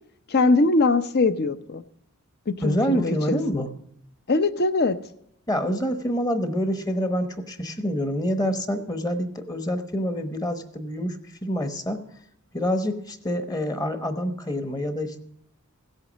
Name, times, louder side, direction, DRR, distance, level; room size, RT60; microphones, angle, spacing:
voice 1, 0.3-1.8 2.5-3.6 4.3-5.0, left 3 dB, 50° left, 12 dB, 0.7 m, -22 dB
voice 2, 2.6-3.7 5.5-12.0 12.5-15.2, equal, 15° left, 8 dB, 1.0 m, -27 dB
16.0 x 8.1 x 6.2 m, 0.74 s
head